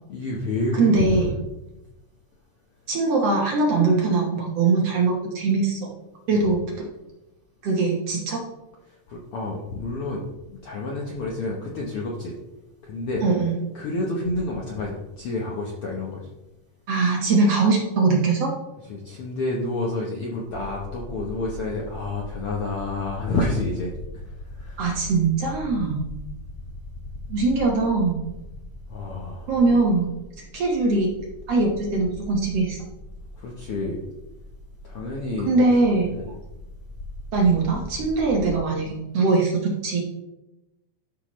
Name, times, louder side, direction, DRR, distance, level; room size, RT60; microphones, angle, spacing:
voice 1, 0.1-1.3 6.3-6.5 9.1-10.2 10.6-12.4 12.8-13.2 13.7-16.2 18.9-23.9 24.6-24.8 28.9-29.8 33.4-34.0 34.8-35.7 36.1-36.3, left 2 dB, 65° left, -2 dB, 1.4 m, -29 dB
voice 2, 0.7-1.3 2.9-5.9 6.3-6.8 7.6-8.4 13.2-13.5 16.9-18.5 24.8-26.0 27.3-28.2 29.5-30.1 30.5-31.1 31.5-32.8 35.5-36.1 37.3-40.0, right 3 dB, 60° right, -1 dB, 1.9 m, -21 dB
sound 1, 20.5-38.6, left 1 dB, 80° left, 1.2 m, -40 dB
13.0 x 5.9 x 3.1 m, 0.99 s
omnidirectional pair, 3.8 m